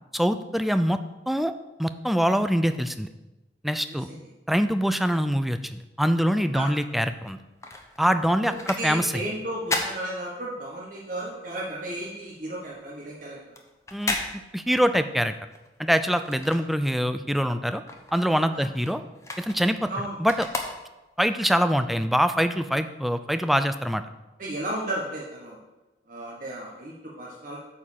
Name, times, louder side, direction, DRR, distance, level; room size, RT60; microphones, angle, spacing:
voice 1, 0.1-1.0 1.3-1.5 1.8-3.1 3.6-4.1 4.5-7.4 8.0-9.2 13.9-14.2 14.5-15.3 15.8-17.8 18.1-19.0 19.4-19.9 20.2-20.5 21.2-24.0, equal, ahead, 10 dB, 0.4 m, -24 dB
sound 1, 7.2-10.9 11.2-17.2 17.5-21.3 21.8-21.9, left 2 dB, 15° left, 1.0 m, -35 dB
voice 2, 8.4-13.6 18.5-18.6 19.9-20.2 24.4-25.6 26.1-27.6, right 1 dB, 50° right, -4 dB, 1.4 m, -34 dB
9.1 x 4.4 x 7.3 m, 1.0 s
head